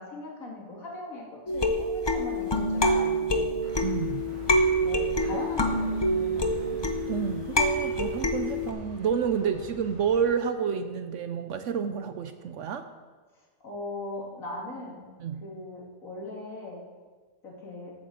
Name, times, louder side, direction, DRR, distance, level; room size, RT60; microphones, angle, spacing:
voice 1, 0.0-3.6 4.8-6.8 13.6-15.0 15.4-16.8 17.4-17.9, left 2 dB, 65° left, -3 dB, 2.6 m, -39 dB
sound 1, 1.5-8.7, equal, 30° left, 0.4 m, -26 dB
sound 2, 3.6-10.2, right 2 dB, 50° right, 3.3 m, -45 dB
voice 2, 3.8-4.2 5.3-5.5 7.1-12.9 15.2-15.4, right 7 dB, 65° right, 9 dB, 0.8 m, -29 dB
13.5 x 8.6 x 3.9 m, 1.4 s
omnidirectional pair, 1.5 m